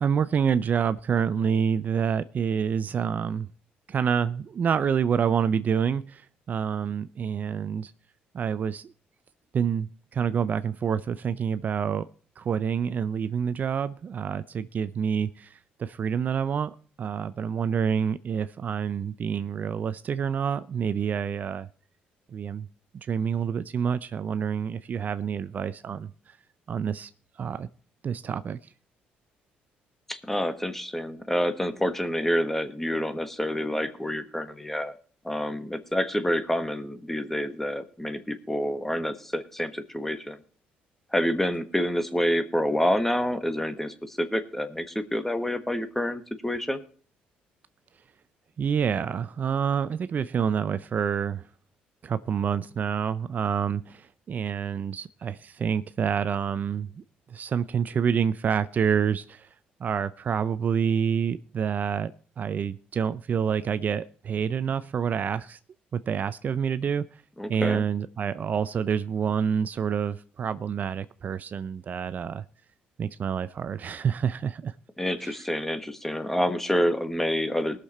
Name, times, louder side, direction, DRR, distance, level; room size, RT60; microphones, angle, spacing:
voice 1, 0.0-3.5 3.9-7.9 8.3-8.9 9.5-12.1 12.4-21.7 22.3-22.7 22.9-26.4 26.7-27.1 27.4-27.7 28.0-28.6 48.6-51.4 52.0-57.0 57.3-59.5 59.8-62.1 62.4-65.6 65.9-67.2 67.5-72.4 73.0-74.7 75.2-75.4, right 7 dB, 50° right, 14 dB, 0.5 m, -27 dB
voice 2, 30.1-34.9 35.2-40.4 41.1-46.8 67.4-67.8 75.0-77.8, equal, 5° left, 11 dB, 1.5 m, -28 dB
19.5 x 6.7 x 4.2 m, 0.43 s
supercardioid pair, 75°, 4 cm